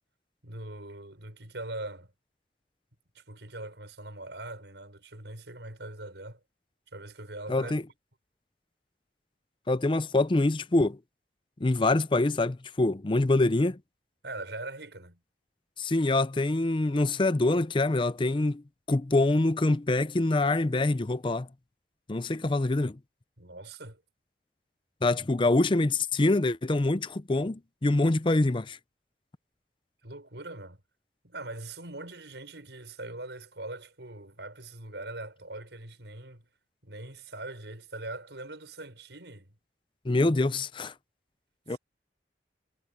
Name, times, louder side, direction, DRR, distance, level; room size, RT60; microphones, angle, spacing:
voice 1, 0.4-2.1 3.1-6.4 6.9-7.7 14.2-15.2 23.4-24.0 30.0-30.8 31.2-36.5 36.8-39.5 41.7-41.8, right 2 dB, 80° right, 6.0 m, -42 dB
voice 2, 7.5-7.8 9.7-11.0 11.6-13.8 15.8-18.6 18.9-21.5 22.1-23.0 25.0-28.8 40.0-40.9 41.7-41.8, left 2 dB, 30° left, 0.6 m, -25 dB
head